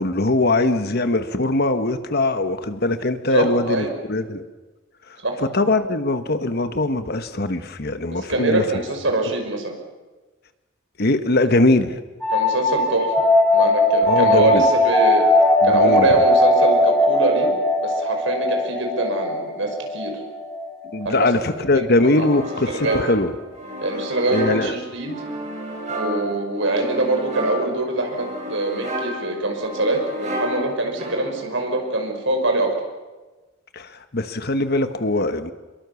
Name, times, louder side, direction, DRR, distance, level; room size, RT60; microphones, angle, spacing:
voice 1, 0.0-4.4 5.4-8.6 11.0-12.0 14.1-14.6 15.6-16.2 20.9-23.3 24.3-24.8 33.7-35.5, left 2 dB, 50° left, 9 dB, 1.3 m, -21 dB
voice 2, 3.3-3.9 5.2-5.4 8.1-9.7 12.3-13.1 13.5-15.3 15.6-17.5 17.8-20.1 21.1-21.3 22.1-22.3 22.7-23.0 23.8-25.2 25.9-32.7, right 2 dB, 70° right, 3 dB, 5.5 m, -24 dB
sound 1, 12.2-21.6, left 1 dB, 5° left, 2.9 m, -19 dB
sound 2, 22.0-31.5, equal, 35° right, 6.5 m, -32 dB
27.5 x 22.5 x 7.2 m, 1.2 s
head